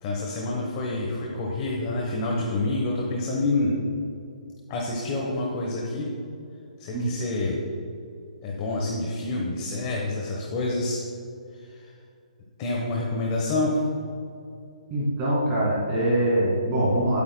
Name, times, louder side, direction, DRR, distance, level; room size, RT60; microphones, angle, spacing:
voice 1, 0.0-3.8 4.7-6.1 6.8-7.6 8.4-11.0 11.5-11.9 12.6-13.8, left 2 dB, 25° left, -2 dB, 1.0 m, -27 dB
voice 2, 14.9-17.2, right 1 dB, 20° right, -7 dB, 2.1 m, -23 dB
17.0 x 8.6 x 2.2 m, 2.6 s
hypercardioid pair, 170°, 4 cm